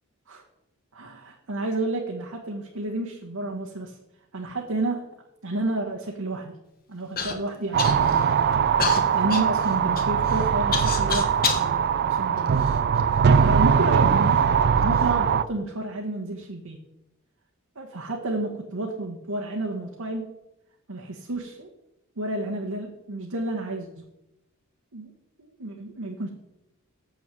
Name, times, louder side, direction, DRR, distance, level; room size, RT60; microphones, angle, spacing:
voice 1, 0.9-4.0 4.3-5.1 5.4-6.5 6.9-8.5 9.1-12.6 13.4-14.4 14.8-16.8 17.8-20.4 20.9-21.7 22.2-24.1 24.9-25.1 25.4-26.3, right 2 dB, 75° right, 0 dB, 1.2 m, -30 dB
Human voice / Cough, 7.2-7.3 7.8-8.3 8.8-11.7 12.4-13.2 14.0-14.1 14.8-15.1, left 5 dB, 45° left, 1.3 m, -29 dB
sound 1, 7.7-15.4, right 7 dB, 50° right, 0.4 m, -21 dB
7.2 x 6.1 x 7.5 m, 0.90 s
head